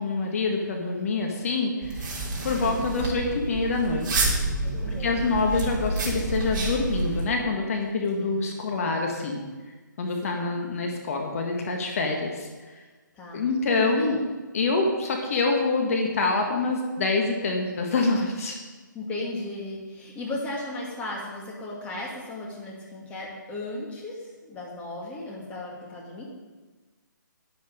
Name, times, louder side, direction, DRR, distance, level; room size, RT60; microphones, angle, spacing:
voice 1, 0.0-2.1 2.4-4.3 5.0-9.4 10.0-12.8 13.3-14.2 14.5-18.6, left 3 dB, 45° left, 1 dB, 2.0 m, -26 dB
sound 1, 1.8-7.2, right 3 dB, 25° right, 3.7 m, -29 dB
voice 2, 4.6-5.2 8.1-8.5 10.2-10.6 13.1-13.4 14.0-14.1 18.9-26.2, left 2 dB, 10° left, -3 dB, 2.4 m, -36 dB
11.5 x 11.0 x 5.3 m, 1.3 s
hypercardioid pair, 150°, 11 cm